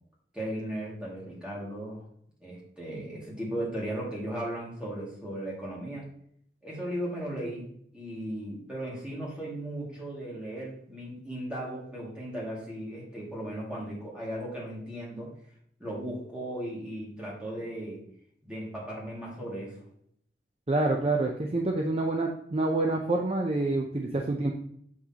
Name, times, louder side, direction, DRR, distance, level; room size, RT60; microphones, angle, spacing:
voice 1, 0.3-2.0 2.4-6.0 6.6-15.3 15.8-18.0 18.4-19.8, right 1 dB, 5° right, -5 dB, 2.2 m, -36 dB
voice 2, 20.7-24.5, right 2 dB, 30° right, 1 dB, 0.6 m, -27 dB
6.6 x 6.0 x 2.9 m, 0.66 s
head